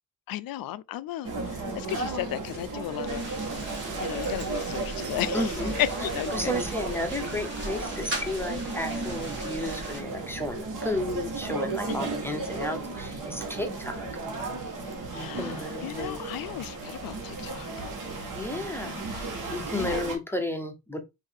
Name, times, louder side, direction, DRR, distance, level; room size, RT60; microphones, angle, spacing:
voice 1, 0.3-3.3 4.0-5.5 5.8-6.5 12.0-12.1 15.1-17.9 18.8-19.4 19.7-20.0, left 13 dB, 65° left, 0.5 m, -34 dB
sound 1, 1.2-20.2, right 3 dB, 55° right, 1.5 m, -34 dB
sound 2, 3.1-10.0, right 2 dB, 30° right, 2.8 m, -38 dB
voice 2, 5.3-5.7 6.3-14.1 15.1-16.3 18.3-21.0, left 1 dB, 5° left, 0.7 m, -33 dB
5.4 x 2.7 x 3.5 m
wide cardioid pair, 150°, 37 cm